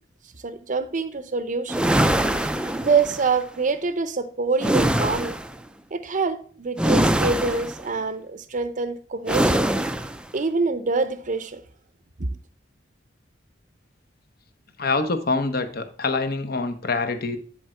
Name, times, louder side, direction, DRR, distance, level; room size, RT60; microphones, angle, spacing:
voice 1, 0.3-1.8 2.4-5.4 5.9-9.6 10.3-11.6 12.2-12.3, right 4 dB, 45° right, 0.7 m, -25 dB
sound 1, 1.7-3.3 4.6-5.5 6.8-7.9 9.3-10.2, right 1 dB, 5° right, 0.4 m, -22 dB
voice 2, 14.8-17.4, left 3 dB, 55° left, 1.0 m, -25 dB
10.0 x 4.4 x 4.4 m
head